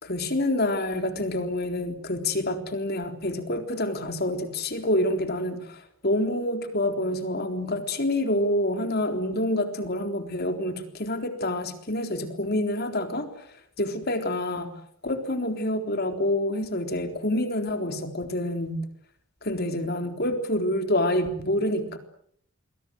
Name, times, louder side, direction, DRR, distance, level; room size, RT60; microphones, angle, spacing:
voice 1, 0.0-13.3 13.8-14.7 15.0-18.8 19.4-22.0, left 1 dB, 45° left, 6 dB, 3.8 m, -27 dB
28.5 x 23.0 x 7.9 m, 0.67 s
head